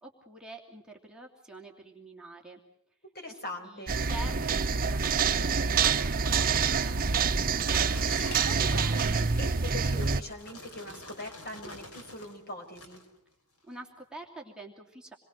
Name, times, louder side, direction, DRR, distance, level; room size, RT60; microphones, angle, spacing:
voice 1, 0.0-2.6 3.3-7.8 13.7-15.2, right 2 dB, 5° right, -1 dB, 2.8 m, -47 dB
voice 2, 3.1-4.0 8.4-13.0, left 1 dB, 45° left, 4 dB, 5.7 m, -42 dB
sound 1, 3.9-10.2, right 5 dB, 40° right, 0.9 m, -26 dB
sound 2, 7.3-12.4 12.7-13.1 13.7-13.8, left 2 dB, 80° left, 5.5 m, -46 dB
28.0 x 22.0 x 6.5 m, 0.74 s
head